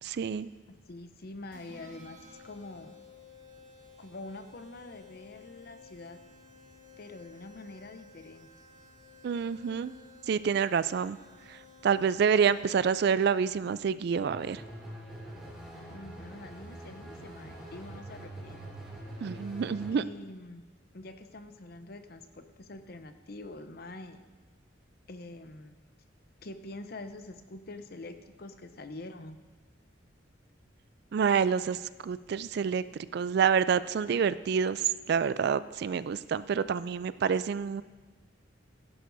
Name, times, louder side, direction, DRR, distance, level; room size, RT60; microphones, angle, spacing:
voice 1, 0.0-0.5 9.2-9.9 10.3-11.2 11.5-14.6 19.2-20.0 31.1-32.8 33.1-37.8, right 6 dB, 55° right, 16 dB, 0.3 m, -28 dB
voice 2, 0.7-3.0 4.0-6.2 7.0-8.5 15.9-18.7 19.9-20.7 20.9-24.3 25.1-25.7 26.4-29.4, left 2 dB, 55° left, 9 dB, 0.7 m, -45 dB
sound 1, 1.5-12.9, left 4 dB, 75° right, 2.3 m, -55 dB
sound 2, 14.3-19.9, right 1 dB, ahead, 3.5 m, -44 dB
16.0 x 11.0 x 2.7 m, 1.3 s
head